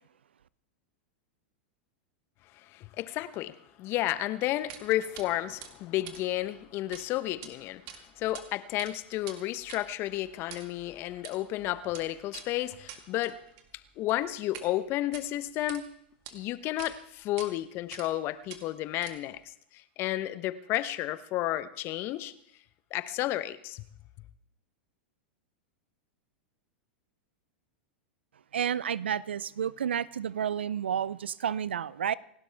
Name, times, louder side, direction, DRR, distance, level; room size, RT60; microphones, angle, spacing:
voice 1, 2.7-13.4 14.0-15.8 16.3-19.4 19.7-22.3 22.9-23.8, left 15 dB, 45° left, 0.9 m, -32 dB
sound 1, 4.7-4.9 5.2-5.3 5.6-7.1 7.3-7.5 7.9-8.4 8.7-14.7 15.0-15.8 16.3-16.4 16.8-16.9 17.4-17.5 17.9-18.2 18.5-19.4, right 10 dB, 50° right, 2.0 m, -47 dB
voice 2, 28.5-32.1, right 8 dB, 80° right, 0.5 m, -31 dB
28.0 x 12.0 x 3.5 m
hypercardioid pair, 100°, 6 cm